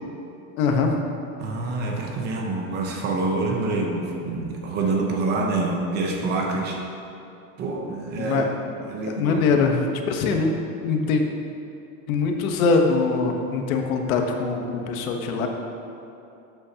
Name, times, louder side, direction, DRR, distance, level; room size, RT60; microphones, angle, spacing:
voice 1, 0.6-1.0 8.1-8.5 9.1-10.5 10.8-11.2 12.1-15.5, left 4 dB, 75° left, 3 dB, 1.2 m, -22 dB
voice 2, 1.4-6.8 7.6-8.5 8.8-9.4, right 3 dB, 25° right, 1 dB, 0.8 m, -26 dB
12.5 x 8.2 x 2.9 m, 2.7 s
supercardioid pair, 170°, 42 cm